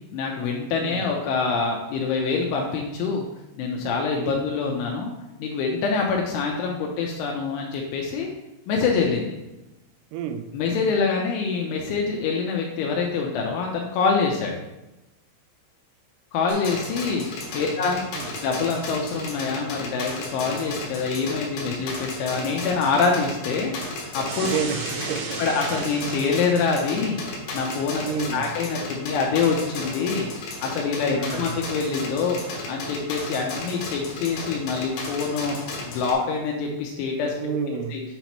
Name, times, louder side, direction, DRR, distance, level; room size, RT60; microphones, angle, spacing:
voice 1, 0.1-3.2 3.6-5.1 5.4-8.3 8.7-9.3 10.5-14.6 16.3-17.3 17.5-18.0 18.4-23.7 24.1-24.5 25.4-27.2 27.5-30.3 30.6-32.4 32.7-35.6 35.9-37.3 37.7-38.0, left 5 dB, 85° left, 0 dB, 3.0 m, -25 dB
voice 2, 0.8-1.1 4.2-4.5 10.1-10.6 17.6-17.7 18.1-18.3 24.4-25.4 25.7-25.9 28.0-28.5 31.0-31.5 37.4-38.0, right 6 dB, 90° right, 8 dB, 3.3 m, -31 dB
sound 1, 16.5-36.1, left 2 dB, 65° left, 2.3 m, -34 dB
sound 2, 24.3-26.7, right 4 dB, 70° right, 3.0 m, -34 dB
8.9 x 3.0 x 5.6 m, 0.98 s
omnidirectional pair, 5.9 m